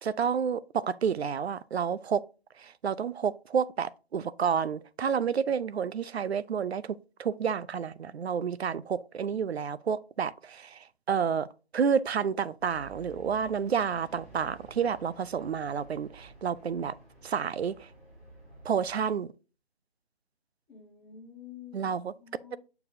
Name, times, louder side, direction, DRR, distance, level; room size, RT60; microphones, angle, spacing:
voice 1, 0.0-2.2 2.6-11.5 11.7-16.9 17.2-17.9 18.6-19.3 21.7-22.1, right 7 dB, 80° right, 0.5 m, -30 dB
sound 1, 12.6-19.1, right 2 dB, 15° right, 1.5 m, -53 dB
voice 2, 20.7-22.6, left 8 dB, 5° left, 0.6 m, -49 dB
6.9 x 6.5 x 2.6 m
figure-of-eight pair, 155°, 31 cm